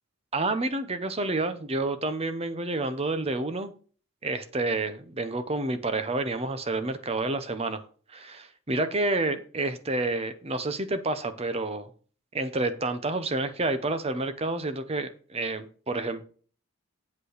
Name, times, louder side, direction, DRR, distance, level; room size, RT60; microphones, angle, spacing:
voice 1, 0.3-3.7 4.2-7.8 8.1-11.9 12.3-16.2, right 2 dB, 30° right, 0.8 m, -29 dB
8.4 x 5.1 x 6.6 m
head